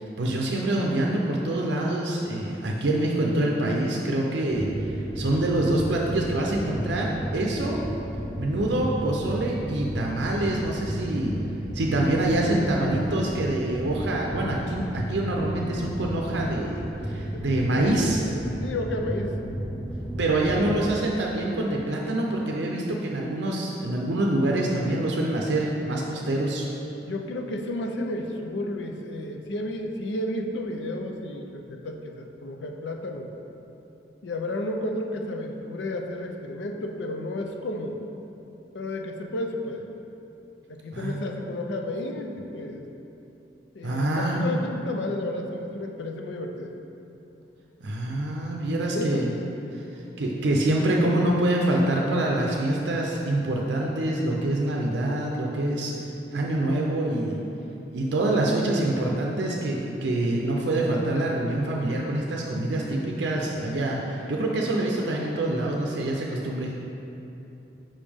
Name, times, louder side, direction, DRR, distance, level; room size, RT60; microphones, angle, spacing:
voice 1, 0.0-7.8 8.4-11.4 11.7-18.2 20.2-26.7 40.9-41.2 43.8-44.5 47.8-49.3 49.7-49.8 50.2-55.9 56.3-57.4 57.9-66.7, right 1 dB, 75° right, -1 dB, 0.5 m, -26 dB
sound 1, 4.5-20.9, equal, 5° left, 0.5 m, -33 dB
voice 2, 12.5-13.0 17.3-18.3 18.6-19.4 20.6-20.8 27.0-33.3 34.2-38.0 38.7-39.9 40.7-42.9 43.7-46.7 48.9-49.2, left 1 dB, 85° left, 3 dB, 0.5 m, -32 dB
5.3 x 5.1 x 3.5 m, 3.0 s
head